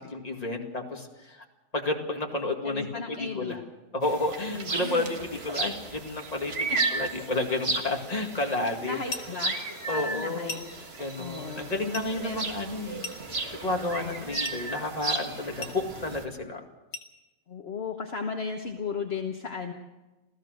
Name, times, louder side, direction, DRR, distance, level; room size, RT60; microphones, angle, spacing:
voice 1, 0.1-1.4 1.7-3.6 3.9-9.0 9.9-10.6 11.0-13.0 13.6-16.6, left 2 dB, 30° left, 2 dB, 2.3 m, -31 dB
voice 2, 2.6-3.6 4.5-4.7 6.7-6.8 8.8-9.6 9.9-10.6 11.2-11.7 12.2-12.4 14.0-14.4 17.5-19.7, left 5 dB, 50° left, 3 dB, 1.5 m, -35 dB
sound 1, 4.0-16.3, right 3 dB, 50° right, 2.0 m, -34 dB
sound 2, 9.1-9.4 10.5-10.8 11.9-12.2 13.0-13.4 14.4-14.7 15.6-15.9 16.9-17.2, left 3 dB, 75° left, 2.0 m, -38 dB
27.5 x 15.5 x 6.5 m, 1.1 s
omnidirectional pair, 1.4 m